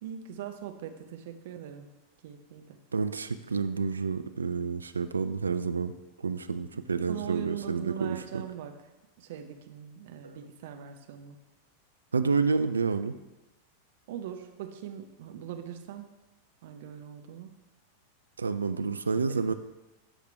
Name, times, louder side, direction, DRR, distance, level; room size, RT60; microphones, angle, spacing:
voice 1, 0.0-1.9 2.2-2.8 7.1-8.8 9.2-11.4 14.1-16.1 16.6-17.6 19.2-19.5, right 10 dB, 55° right, 6 dB, 0.7 m, -41 dB
voice 2, 2.9-5.9 6.2-8.4 12.1-13.1 18.4-19.5, right 4 dB, 75° right, 10 dB, 0.4 m, -29 dB
13.5 x 5.0 x 3.3 m, 1.0 s
figure-of-eight pair, 90°, 0 cm